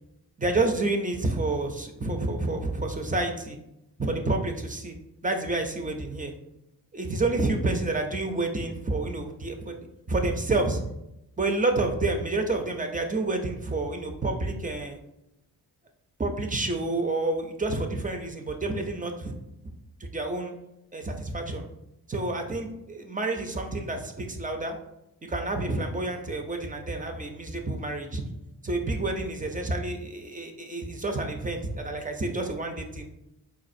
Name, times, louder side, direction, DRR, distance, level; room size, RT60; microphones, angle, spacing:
voice 1, 0.4-3.6 4.0-5.0 5.2-6.3 6.9-10.8 11.4-15.0 16.2-19.3 20.0-20.5 20.9-21.7 22.1-24.8 25.2-28.2 28.6-33.1, right 2 dB, 20° right, 4 dB, 0.4 m, -29 dB
4.0 x 2.4 x 2.6 m, 0.86 s
cardioid pair, 70°, 40 cm